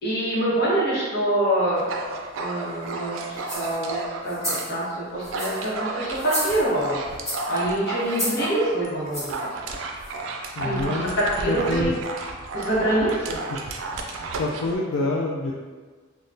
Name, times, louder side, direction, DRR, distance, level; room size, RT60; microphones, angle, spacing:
voice 1, 0.0-1.9 2.3-7.0 7.5-9.5 10.6-11.9 12.5-13.4, right 1 dB, 55° left, -7 dB, 1.0 m, -25 dB
Dog, 1.8-4.7 5.1-14.7, right 3 dB, 85° right, 0.4 m, -33 dB
sound 1, 3.4-3.8 4.3-4.7 5.2-5.7 6.2-6.8 7.3-7.6 8.1-8.5 9.1-9.4 10.0-10.1, equal, 15° left, 1.1 m, -31 dB
voice 2, 10.6-11.2 11.5-11.9 14.4-15.5, left 2 dB, 80° left, -3 dB, 0.3 m, -26 dB
3.6 x 2.2 x 2.6 m, 1.4 s
head